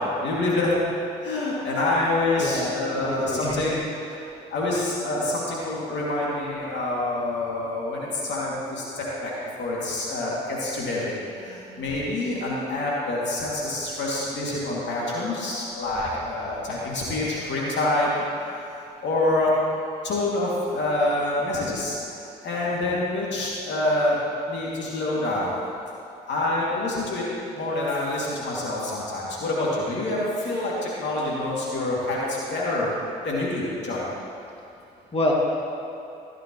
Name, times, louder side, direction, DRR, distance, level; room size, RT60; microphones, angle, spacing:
voice 1, 0.2-0.7 1.2-4.2 4.5-9.3 9.6-19.5 20.0-25.5 26.3-27.3 27.5-32.9 33.2-34.0, left 2 dB, 65° left, -5 dB, 2.6 m, -27 dB
voice 2, 2.4-3.6 35.1-35.3, left 1 dB, 30° left, -3 dB, 2.3 m, -27 dB
15.5 x 8.9 x 3.1 m, 2.6 s
hypercardioid pair, 50°, 20 cm